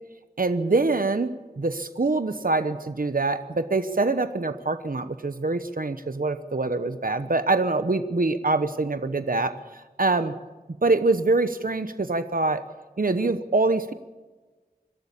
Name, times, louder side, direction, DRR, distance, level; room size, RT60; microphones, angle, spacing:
voice 1, 0.4-10.3 10.8-12.6 13.0-13.9, right 3 dB, 65° right, 10 dB, 1.0 m, -24 dB
25.5 x 13.0 x 8.3 m, 1.3 s
wide cardioid pair, 45°, 16 cm